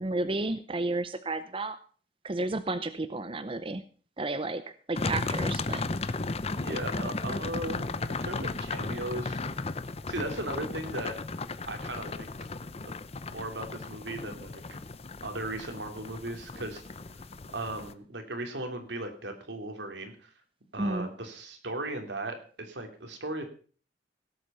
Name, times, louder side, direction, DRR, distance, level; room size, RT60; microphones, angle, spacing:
voice 1, 0.0-1.8 2.2-3.8 4.2-4.6 4.9-5.8 20.8-21.1, right 2 dB, 30° right, 11 dB, 0.7 m, -32 dB
sound 1, 5.0-17.9, left 3 dB, 35° left, 0.7 m, -35 dB
voice 2, 6.5-9.4 10.1-11.2 11.7-12.3 12.8-12.9 13.3-14.6 15.2-16.8 17.5-20.3 20.7-23.4, right 2 dB, 80° right, 5 dB, 2.9 m, -37 dB
17.5 x 8.2 x 5.5 m, 0.41 s
head